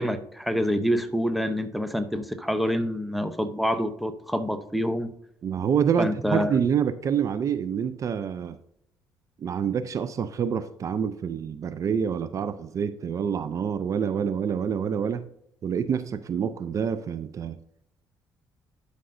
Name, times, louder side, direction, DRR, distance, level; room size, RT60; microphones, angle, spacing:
voice 1, 0.0-5.1 6.0-6.5, equal, ahead, 10 dB, 0.7 m, -27 dB
voice 2, 5.4-8.6 9.4-15.3 15.6-17.6, right 7 dB, 45° right, 12 dB, 0.4 m, -27 dB
11.5 x 5.3 x 2.6 m, 0.74 s
cardioid pair, 90°, 8 cm